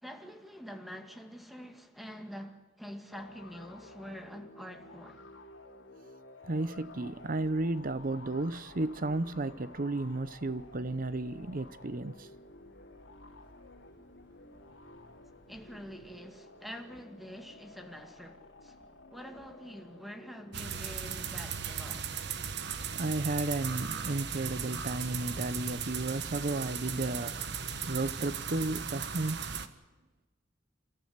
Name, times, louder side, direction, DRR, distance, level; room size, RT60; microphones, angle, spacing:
voice 1, 0.0-5.3 15.5-18.8 19.1-22.1, equal, ahead, 2.1 m, -46 dB
sound 1, 3.1-21.5, left 2 dB, 85° left, 2.9 m, -53 dB
sound 2, 6.4-16.2, left 1 dB, 65° left, 4.8 m, -60 dB
voice 2, 6.5-12.3 22.9-29.4, right 2 dB, 45° right, 0.8 m, -33 dB
sound 3, 20.5-29.7, right 6 dB, 60° right, 1.4 m, -37 dB
29.0 x 14.0 x 9.6 m
head